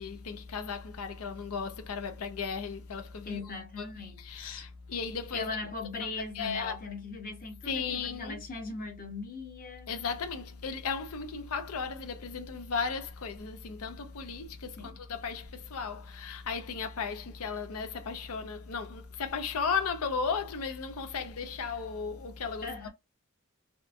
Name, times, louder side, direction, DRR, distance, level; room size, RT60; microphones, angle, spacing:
voice 1, 0.0-5.6 6.0-6.1 6.3-6.8 7.6-8.4 9.9-22.9, left 5 dB, 80° left, 0.5 m, -35 dB
voice 2, 3.2-4.7 5.3-9.9 14.8-15.0 22.6-22.9, left 3 dB, 40° left, 0.8 m, -39 dB
2.9 x 2.3 x 2.4 m
head